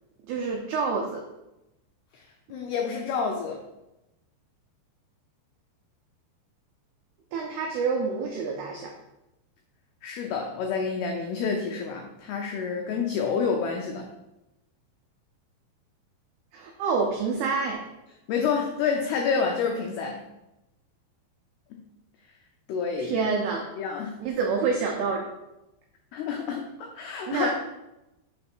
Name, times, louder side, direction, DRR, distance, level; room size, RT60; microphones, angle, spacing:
voice 1, 0.3-1.2 7.3-8.9 16.5-17.8 23.0-23.6 24.2-25.3 27.3-27.5, right 5 dB, 85° right, 1 dB, 2.2 m, -27 dB
voice 2, 2.1-3.6 10.0-14.1 18.3-20.2 22.7-23.2 23.8-24.2 26.1-27.5, left 5 dB, 90° left, 1 dB, 2.2 m, -28 dB
6.8 x 3.1 x 6.0 m, 0.93 s
omnidirectional pair, 5.3 m